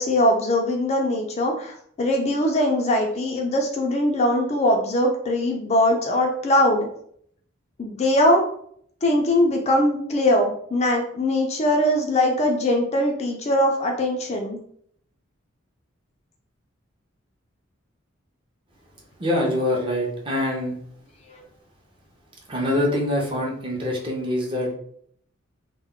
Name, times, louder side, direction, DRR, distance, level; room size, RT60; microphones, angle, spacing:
voice 1, 0.0-6.9 7.8-8.4 9.0-14.6, left 1 dB, 30° left, 2 dB, 0.4 m, -21 dB
voice 2, 19.2-20.8 22.5-24.7, left 1 dB, 25° right, -2 dB, 0.6 m, -24 dB
2.2 x 2.1 x 3.6 m, 0.65 s
head